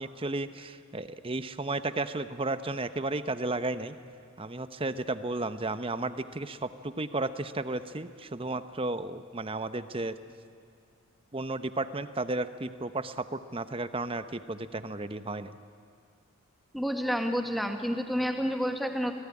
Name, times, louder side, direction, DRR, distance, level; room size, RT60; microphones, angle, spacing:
voice 1, 0.0-4.0 4.4-10.2 11.3-15.6, right 2 dB, 25° right, 11 dB, 0.9 m, -33 dB
voice 2, 16.7-19.1, equal, ahead, 4 dB, 1.8 m, -29 dB
27.5 x 18.5 x 9.9 m, 2.4 s
head